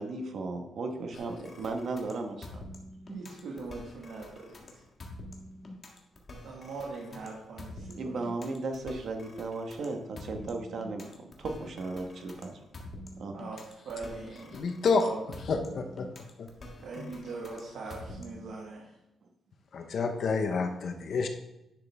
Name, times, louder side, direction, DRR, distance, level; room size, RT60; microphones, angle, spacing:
voice 1, 0.0-2.6 7.9-12.6 13.2-13.3, right 3 dB, 50° right, 4 dB, 1.2 m, -36 dB
sound 1, 1.1-18.5, left 1 dB, 35° left, 1.6 m, -46 dB
voice 2, 3.1-4.8 6.4-8.2 13.3-15.2 16.8-18.9, right 3 dB, 75° right, -3 dB, 1.7 m, -41 dB
voice 3, 14.5-15.1 15.5-16.1 16.4-16.5 17.0-17.1 19.7-21.3, left 4 dB, 50° left, 6 dB, 0.9 m, -29 dB
10.5 x 6.5 x 3.5 m, 0.89 s
wide cardioid pair, 160°, 0 cm